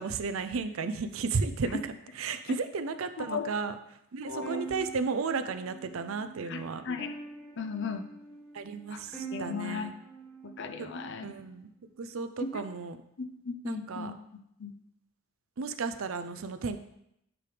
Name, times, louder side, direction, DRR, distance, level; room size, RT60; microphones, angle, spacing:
voice 1, 0.0-3.7 4.1-6.8 8.5-9.9 10.8-10.9 11.2-11.7 12.0-13.0 13.6-14.1 15.6-16.8, right 4 dB, 90° right, 10 dB, 0.5 m, -33 dB
voice 2, 3.2-3.5 4.3-4.6 6.5-7.1 7.6-8.1 8.9-9.0 9.3-9.9 10.4-11.3 12.4-12.6 13.2-14.1 14.6-14.7, left 5 dB, 60° left, 8 dB, 0.6 m, -36 dB
sound 1, 4.4-11.5, right 4 dB, 10° left, 1.4 m, -45 dB
9.6 x 4.9 x 3.4 m, 0.79 s
head